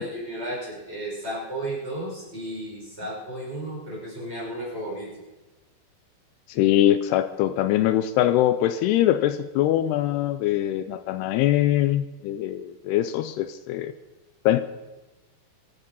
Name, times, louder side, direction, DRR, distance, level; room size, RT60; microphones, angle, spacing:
voice 1, 0.0-5.1, right 1 dB, 15° right, -5 dB, 5.9 m, -33 dB
voice 2, 6.5-13.9 14.5-14.6, left 12 dB, 80° left, 11 dB, 2.6 m, -22 dB
24.0 x 9.6 x 5.4 m, 1.2 s
omnidirectional pair, 4.8 m